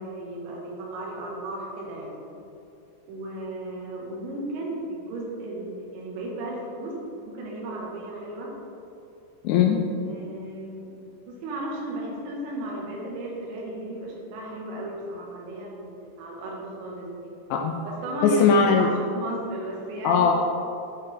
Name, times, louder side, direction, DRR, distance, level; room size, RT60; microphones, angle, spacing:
voice 1, 0.0-2.2 3.1-7.0 7.2-8.5 10.1-10.9 11.3-17.3 17.8-18.5 18.8-20.3, right 1 dB, 80° right, -2 dB, 3.3 m, -35 dB
voice 2, 9.4-9.8 17.5-17.8 18.2-18.9 20.0-20.3, left 6 dB, 85° left, 1 dB, 2.6 m, -19 dB
11.0 x 4.3 x 3.2 m, 2.7 s
omnidirectional pair, 5.4 m